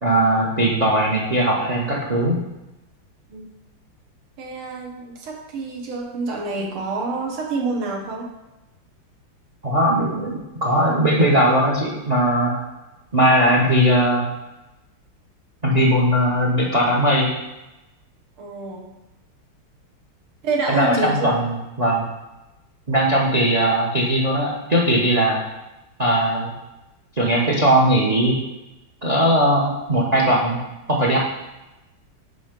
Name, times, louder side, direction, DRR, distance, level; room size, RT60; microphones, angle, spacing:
voice 1, 0.0-2.4 9.6-12.6 13.1-14.3 15.6-17.3 20.7-22.1 22.9-25.4 26.0-26.5 27.2-28.3 29.0-30.6 30.9-31.2, right 1 dB, 45° right, -2 dB, 0.5 m, -19 dB
voice 2, 4.4-8.3 18.4-18.9 20.4-21.4, right 3 dB, 80° right, 0 dB, 2.1 m, -27 dB
9.3 x 3.4 x 5.1 m, 1.0 s
omnidirectional pair, 2.3 m